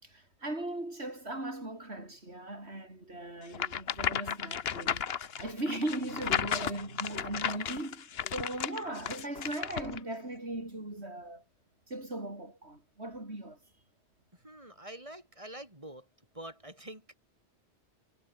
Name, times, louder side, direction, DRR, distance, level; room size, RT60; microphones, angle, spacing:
voice 1, 0.0-11.4 11.9-13.6, right 1 dB, 65° right, 6.5 m, -38 dB
sound 1, 3.5-10.0, left 8 dB, 60° left, 1.1 m, -34 dB
voice 2, 14.4-16.1 16.3-17.1, right 1 dB, 30° right, 7.3 m, -46 dB
omnidirectional pair, 1.2 m